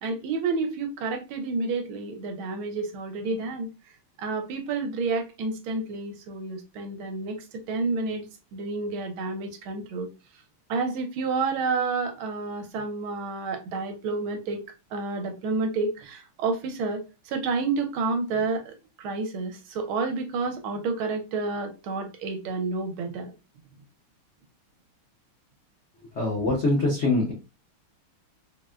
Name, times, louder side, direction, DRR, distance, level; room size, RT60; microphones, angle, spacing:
voice 1, 0.0-3.7 4.2-7.4 7.7-8.2 8.5-10.1 10.7-14.6 14.9-17.0 17.3-23.3, right 4 dB, 80° right, 1.4 m, -29 dB
voice 2, 26.1-27.3, left 2 dB, 90° left, 0.6 m, -23 dB
4.0 x 2.1 x 2.3 m
omnidirectional pair, 2.4 m